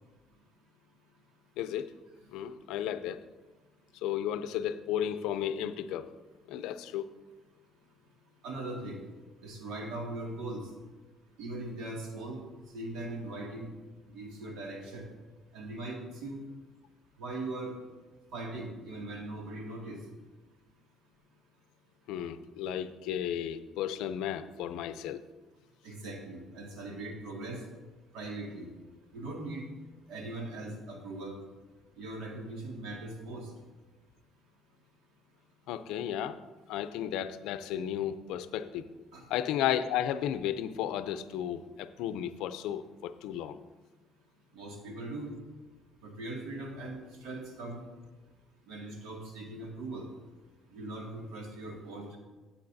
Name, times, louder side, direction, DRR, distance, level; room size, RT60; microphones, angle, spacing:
voice 1, 1.6-1.9 2.3-3.2 3.9-6.1 6.5-7.1 22.1-25.2 35.7-36.4 36.7-38.9 39.3-43.6, left 10 dB, 90° left, 12 dB, 0.5 m, -34 dB
voice 2, 8.4-9.0 9.4-10.7 11.4-12.4 12.7-13.7 14.1-15.1 15.5-16.4 17.2-17.8 18.3-20.0 25.8-27.6 28.1-28.7 29.1-29.7 30.1-31.4 32.0-33.5 39.1-39.3 44.5-45.3 46.0-47.8 48.7-50.1 50.7-52.2, right 2 dB, 90° right, 0 dB, 2.1 m, -40 dB
14.5 x 8.4 x 2.7 m, 1.2 s
cardioid pair, 125°, 0 cm